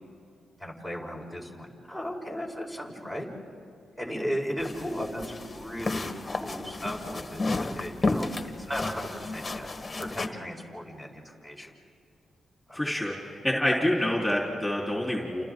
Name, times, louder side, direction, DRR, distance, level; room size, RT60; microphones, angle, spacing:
voice 1, 0.6-3.3 4.0-8.3 8.6-9.7 10.0-11.7 12.7-12.8, equal, 10° right, -1 dB, 4.6 m, -36 dB
sound 1, 4.6-10.3, left 2 dB, 30° left, 1.6 m, -32 dB
voice 2, 12.7-15.4, left 1 dB, 10° left, -3 dB, 4.1 m, -27 dB
29.5 x 29.0 x 3.9 m, 2.3 s
cardioid pair, 65°, 0 cm